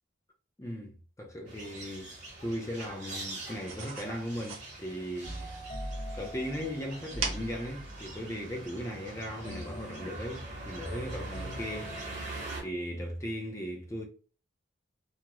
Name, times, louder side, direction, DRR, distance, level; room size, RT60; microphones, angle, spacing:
voice 1, 0.6-2.1 2.4-5.5 6.2-14.0, equal, 15° left, 0.5 m, -38 dB
sound 1, 1.5-12.6, right 2 dB, 40° right, 0.9 m, -43 dB
sound 2, 2.3-9.6, right 5 dB, 85° right, 0.7 m, -44 dB
sound 3, 5.2-8.2 9.4-12.7, equal, 55° left, 0.8 m, -42 dB
2.3 x 2.1 x 2.9 m
head